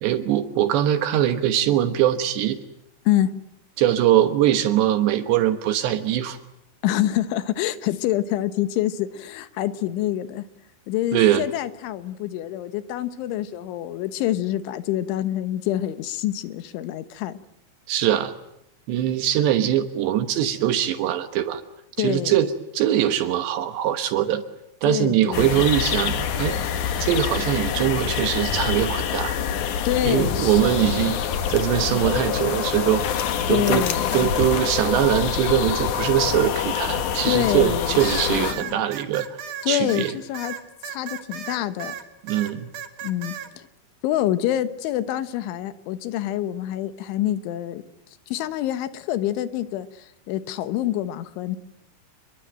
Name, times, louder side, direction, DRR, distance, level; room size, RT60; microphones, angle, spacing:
voice 1, 0.0-2.6 3.8-6.4 11.1-11.4 17.9-18.3 18.9-21.6 22.0-24.4 24.8-26.6 27.0-29.4 30.0-31.2 31.5-33.0 33.5-33.9 34.1-39.4 39.7-40.1 42.3-42.7, right 11 dB, 75° right, 9 dB, 3.2 m, -22 dB
voice 2, 6.8-10.5 10.9-17.4 22.0-22.4 24.9-25.6 29.9-31.1 33.5-34.3 37.3-38.8 39.6-40.6 40.8-42.0 43.0-43.7 44.0-47.8 48.3-51.6, left 13 dB, 85° left, 12 dB, 3.7 m, -26 dB
sound 1, 25.3-38.5, left 8 dB, 60° left, 2.2 m, -26 dB
sound 2, 38.0-42.0 42.3-43.5, right 9 dB, 50° right, 2.2 m, -35 dB
28.5 x 22.5 x 9.1 m, 0.79 s
omnidirectional pair, 5.3 m